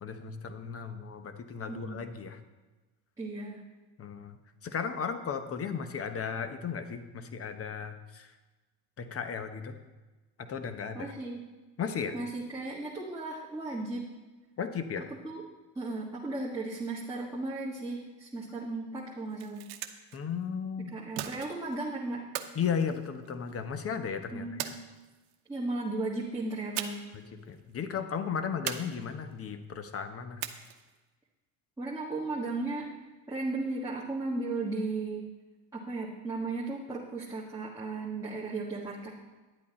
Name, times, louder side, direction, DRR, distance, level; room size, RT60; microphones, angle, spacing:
voice 1, 0.0-2.4 4.0-4.4 4.6-8.3 9.0-9.8 10.4-11.1 11.8-12.2 14.6-15.1 20.1-20.9 22.5-24.7 27.1-30.4, left 6 dB, 35° left, 9 dB, 1.0 m, -35 dB
voice 2, 1.7-2.0 3.2-3.6 10.9-11.4 12.1-14.1 15.2-15.4 15.7-19.6 20.9-22.2 24.3-24.8 25.5-27.0 31.8-32.9 33.3-35.3 35.7-39.1, right 2 dB, 10° right, -6 dB, 1.7 m, -35 dB
sound 1, 19.2-20.2 21.2-21.8 22.3-23.6 24.6-25.4 26.8-27.2 27.5-27.6 28.7-29.4 30.4-31.0, right 11 dB, 65° right, 1.0 m, -39 dB
10.5 x 8.5 x 4.2 m, 1.2 s
supercardioid pair, 95°, 42 cm